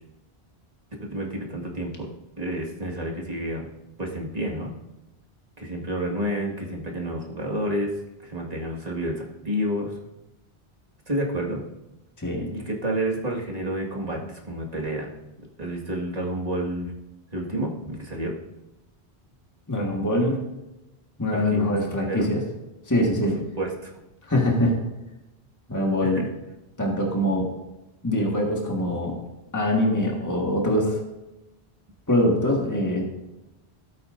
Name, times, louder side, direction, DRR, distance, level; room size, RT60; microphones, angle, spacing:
voice 1, 1.0-2.1 2.4-3.7 4.0-4.7 5.6-8.0 8.2-10.0 11.1-11.6 12.5-15.1 15.6-16.9 17.3-18.4 21.3-21.7 22.1-22.3 23.4-23.9 26.0-26.3, right 1 dB, 35° right, -1 dB, 2.0 m, -29 dB
voice 2, 12.2-12.5 19.7-20.4 21.2-22.4 22.9-23.4 24.3-24.8 25.7-26.2 26.8-27.5 28.0-29.2 29.5-31.0 32.1-33.1, left 1 dB, 15° left, -1 dB, 1.7 m, -23 dB
17.0 x 8.6 x 2.6 m, 0.98 s
omnidirectional pair, 1.1 m